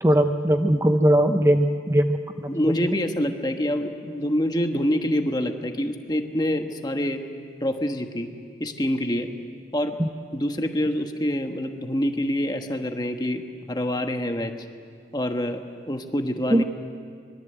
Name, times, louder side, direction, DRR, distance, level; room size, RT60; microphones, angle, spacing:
voice 1, 0.0-2.2 2.4-2.5 10.0-10.1 16.5-16.6, right 1 dB, 15° right, 7 dB, 0.6 m, -19 dB
voice 2, 2.5-7.2 7.6-8.3 8.6-9.3 9.7-9.9 10.3-13.4 13.7-14.5 15.1-16.6, equal, 25° left, 5 dB, 1.3 m, -26 dB
24.0 x 21.5 x 8.0 m, 2.2 s
head